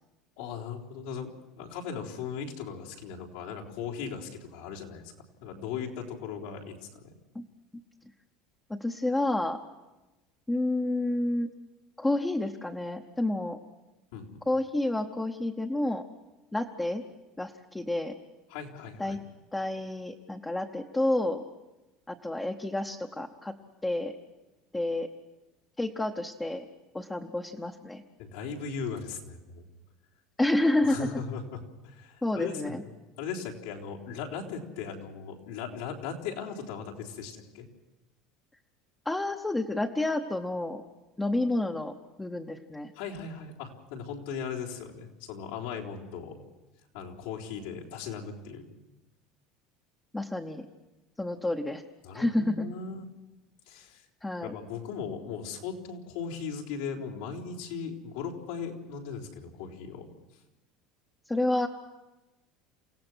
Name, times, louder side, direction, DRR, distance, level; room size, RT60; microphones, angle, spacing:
voice 1, 0.4-5.1 5.4-7.1 14.1-14.4 18.5-19.2 28.2-29.7 30.8-32.9 33.2-37.7 42.9-46.5 46.9-48.8 52.0-53.0 53.7-54.1 54.4-60.1, left 6 dB, 85° left, -3 dB, 3.8 m, -38 dB
voice 2, 8.7-9.6 10.5-11.5 12.0-13.6 14.5-16.0 16.5-17.0 17.4-18.1 19.0-19.2 19.5-21.4 22.1-23.5 23.8-24.2 24.7-25.1 25.8-26.7 26.9-28.0 30.4-31.1 32.2-32.8 39.1-40.8 41.2-42.9 50.1-50.7 51.2-51.8 52.1-52.7 54.2-54.5 61.3-61.7, left 1 dB, 5° left, 2 dB, 0.9 m, -29 dB
28.5 x 17.0 x 6.2 m, 1.1 s
cardioid pair, 165°, 0 cm